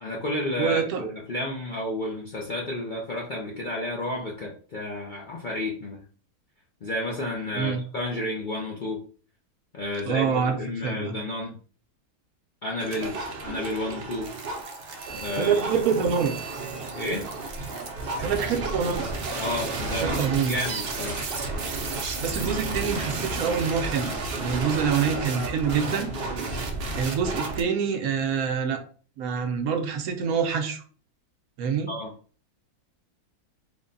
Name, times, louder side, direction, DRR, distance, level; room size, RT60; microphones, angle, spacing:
voice 1, 0.0-6.0 6.8-9.0 9.7-11.6 12.6-14.3 15.2-15.7 17.0-17.3 19.4-21.2 31.9-32.1, left 1 dB, 55° left, -2 dB, 0.5 m, -31 dB
voice 2, 0.6-1.0 7.5-7.8 10.1-11.2 15.4-16.4 18.2-19.1 20.0-20.6 22.2-24.1 24.4-26.1 26.9-28.8 29.2-30.8 31.6-31.9, right 6 dB, 75° right, 5 dB, 1.1 m, -26 dB
sound 1, 12.8-27.6, right 3 dB, 55° right, 0.7 m, -32 dB
3.5 x 2.2 x 3.8 m, 0.41 s
omnidirectional pair, 1.6 m